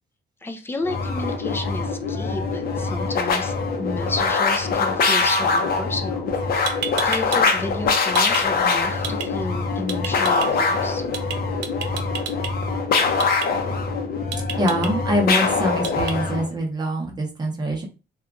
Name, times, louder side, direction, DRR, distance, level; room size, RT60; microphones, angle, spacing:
voice 1, 0.4-3.5 3.8-6.7 7.0-11.0, left 2 dB, 10° left, 5 dB, 0.3 m, -32 dB
sound 1, 0.8-16.5, left 4 dB, 55° left, 0.6 m, -23 dB
sound 2, 6.3-6.4 6.7-7.5 7.8-8.4 9.0-9.3 9.9-10.5 11.1-11.4 11.6-12.5 13.2-13.5 14.3-14.9 15.8-16.1, right 8 dB, 70° right, 0.5 m, -29 dB
voice 2, 14.6-17.8, equal, 20° right, 1 dB, 0.7 m, -24 dB
2.8 x 2.2 x 2.4 m, 0.32 s
cardioid pair, 140°, 19 cm